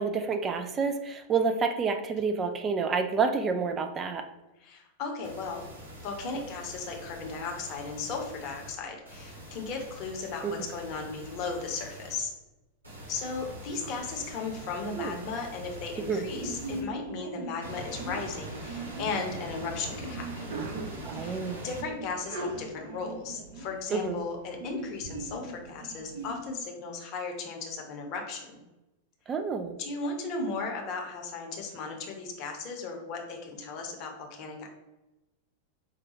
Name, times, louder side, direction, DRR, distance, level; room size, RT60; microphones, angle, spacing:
voice 1, 0.0-4.2 10.4-10.5 15.0-15.2 16.1-16.3 21.0-21.6 23.9-24.2 29.3-29.8, right 5 dB, 25° right, 5 dB, 0.3 m, -29 dB
voice 2, 4.6-5.6 6.0-12.3 13.1-20.6 21.1-28.5 29.8-34.7, left 4 dB, 40° left, 2 dB, 0.8 m, -36 dB
sound 1, 5.2-8.7 9.0-12.2 12.8-16.8 17.6-21.8, right 1 dB, 80° right, 1.4 m, -43 dB
Sneeze, 16.4-26.4, right 2 dB, 55° right, 1.1 m, -40 dB
4.7 x 2.3 x 2.8 m, 1.0 s
figure-of-eight pair, 90°, 0 cm